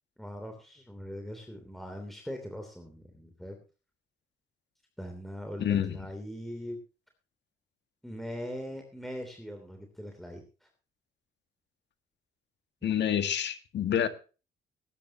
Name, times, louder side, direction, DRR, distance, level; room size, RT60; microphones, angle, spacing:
voice 1, 0.2-3.6 5.0-6.8 8.0-10.7, equal, ahead, 4 dB, 3.0 m, -41 dB
voice 2, 5.6-6.0 12.8-14.1, left 9 dB, 60° left, 10 dB, 1.7 m, -28 dB
19.5 x 10.0 x 2.9 m, 0.33 s
cardioid pair, 90°, 20 cm